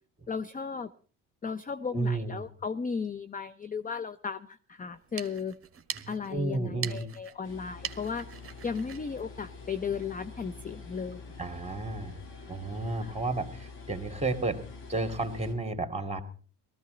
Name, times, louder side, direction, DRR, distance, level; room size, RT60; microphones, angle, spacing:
voice 1, 0.3-0.9 1.4-5.5 6.1-8.3 8.6-11.2 13.0-13.2, left 5 dB, 20° left, 12 dB, 0.6 m, -35 dB
voice 2, 1.9-2.5 6.0-7.1 11.4-12.2 12.5-14.6 14.9-16.2, right 2 dB, 15° right, 7 dB, 2.4 m, -32 dB
sound 1, 4.9-10.2, right 8 dB, 30° right, 1.3 m, -43 dB
sound 2, 7.4-15.5, left 4 dB, 65° left, 5.9 m, -46 dB
18.0 x 14.5 x 3.9 m, 0.41 s
supercardioid pair, 75°, 45 cm